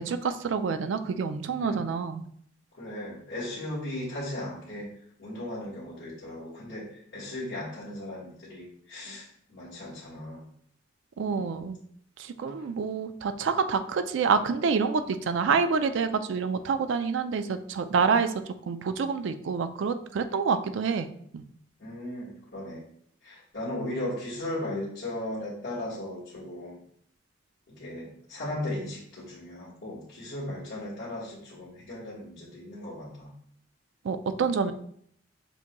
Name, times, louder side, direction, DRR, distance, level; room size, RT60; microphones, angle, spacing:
voice 1, 0.0-2.2 11.2-11.8 12.2-18.3 18.7-21.1 21.3-21.4 34.0-34.7, right 5 dB, 75° right, 10 dB, 0.4 m, -27 dB
voice 2, 1.6-1.9 2.7-4.9 5.2-10.5 11.3-11.5 12.6-12.7 21.8-22.8 23.2-26.8 27.7-33.3 34.6-34.7, left 1 dB, 75° left, -10 dB, 1.6 m, -37 dB
6.9 x 2.9 x 2.2 m, 0.66 s
head